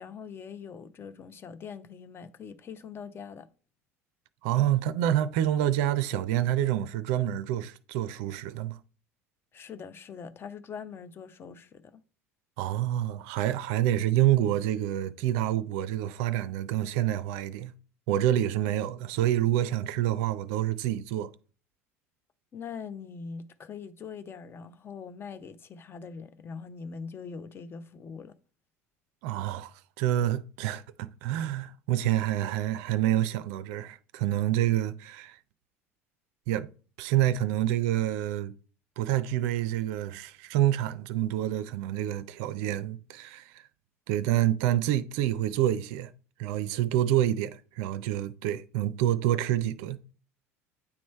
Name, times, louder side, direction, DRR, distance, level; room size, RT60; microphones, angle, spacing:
voice 1, 0.0-3.5 9.5-12.0 22.5-28.3, left 6 dB, 30° left, 0.6 m, -42 dB
voice 2, 4.4-8.8 12.6-17.7 18.1-21.3 29.2-29.7 30.0-35.4 36.5-36.7 37.0-38.5 39.0-43.6 44.1-46.1 46.4-50.0, right 12 dB, 55° right, 0.4 m, -27 dB
8.6 x 3.1 x 4.4 m
figure-of-eight pair, 70°, 8 cm